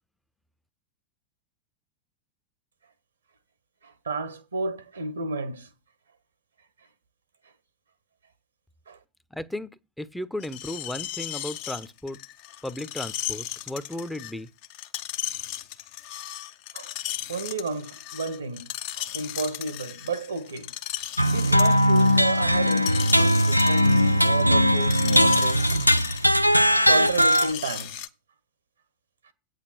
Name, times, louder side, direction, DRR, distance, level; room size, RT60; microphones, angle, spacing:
voice 1, 3.8-5.7 8.9-9.0 16.7-20.7 21.3-25.7 26.8-28.1, right 3 dB, 75° right, 1.2 m, -32 dB
voice 2, 9.3-9.7 10.0-12.2 12.6-14.5, left 1 dB, 5° left, 0.7 m, -35 dB
Screech, 10.4-28.1, left 13 dB, 45° left, 0.7 m, -36 dB
sound 1, 21.2-27.5, equal, 90° left, 0.4 m, -20 dB
8.7 x 6.6 x 6.0 m
figure-of-eight pair, 90°, 0 cm